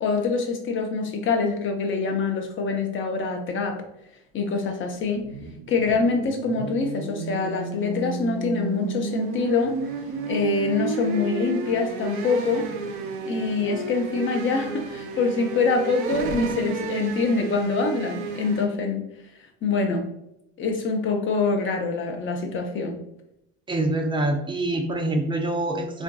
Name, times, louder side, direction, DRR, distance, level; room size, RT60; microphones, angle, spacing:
voice 1, 0.0-3.8 4.3-5.3 5.7-9.8 10.3-12.7 13.2-19.0 19.6-20.1 20.6-23.0, left 4 dB, 35° left, 4 dB, 0.7 m, -25 dB
sound 1, 4.9-18.7, right 4 dB, 80° right, 0.7 m, -32 dB
voice 2, 23.7-26.0, right 2 dB, 15° right, 3 dB, 0.5 m, -25 dB
3.7 x 2.5 x 2.3 m, 0.83 s
supercardioid pair, 95°, 35 cm